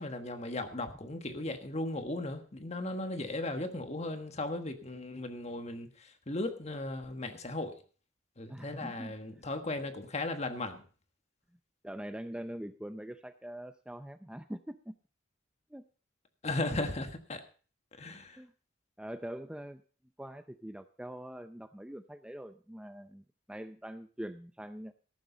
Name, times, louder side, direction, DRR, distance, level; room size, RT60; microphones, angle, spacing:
voice 1, 0.0-7.8 8.4-10.8 16.4-17.4 18.0-18.4, left 2 dB, 35° left, 8 dB, 1.5 m, -36 dB
voice 2, 8.5-9.4 11.8-15.0 15.7-15.8 18.4-18.5 19.0-19.8 20.2-24.9, equal, 5° right, 9 dB, 0.5 m, -43 dB
14.0 x 12.0 x 4.0 m, 0.39 s
head